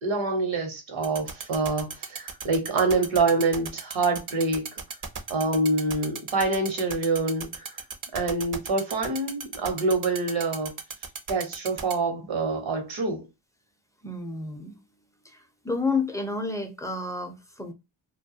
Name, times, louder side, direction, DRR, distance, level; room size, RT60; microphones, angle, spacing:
voice 1, 0.0-4.7 5.3-7.8 8.1-10.7 11.3-13.3, right 3 dB, 75° right, 1.0 m, -26 dB
sound 1, 1.0-11.9, right 6 dB, 40° right, 0.6 m, -34 dB
voice 2, 14.0-14.8 15.2-17.7, left 3 dB, 5° left, 0.5 m, -30 dB
2.3 x 2.1 x 2.6 m
cardioid pair, 65°, 48 cm